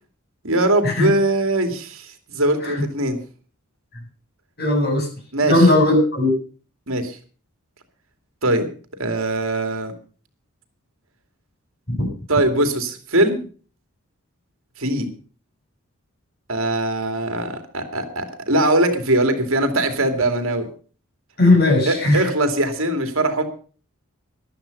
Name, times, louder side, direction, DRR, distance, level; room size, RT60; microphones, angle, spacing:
voice 1, 0.4-3.2 5.3-5.7 6.9-7.2 8.4-8.7 9.0-9.9 12.3-13.4 14.8-15.1 16.5-20.7 21.8-23.4, right 1 dB, 65° right, 6 dB, 2.7 m, -21 dB
voice 2, 4.6-5.1 5.4-6.4 11.9-12.1 21.4-22.2, left 2 dB, 45° left, 0 dB, 7.6 m, -17 dB
14.5 x 12.0 x 5.4 m, 0.40 s
head